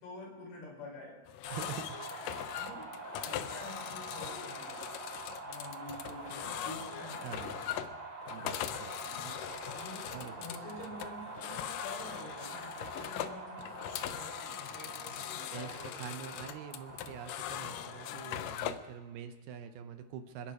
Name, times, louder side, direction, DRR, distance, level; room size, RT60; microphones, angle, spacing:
voice 1, 0.0-1.2 2.5-2.9 3.2-4.9 5.4-7.4 8.3-8.6 9.1-9.2 9.7-16.3, left 2 dB, 65° left, -1 dB, 6.0 m, -48 dB
sound 1, 1.3-18.9, left 11 dB, 85° left, 1.9 m, -41 dB
sound 2, 1.4-18.2, right 3 dB, 25° right, 4.4 m, -46 dB
voice 2, 1.5-2.0 7.2-7.6 8.3-8.9 9.2-9.3 10.1-10.5 15.5-15.7 16.0-20.5, right 8 dB, 75° right, 8 dB, 2.6 m, -45 dB
27.5 x 10.5 x 4.9 m, 1.2 s
omnidirectional pair, 4.8 m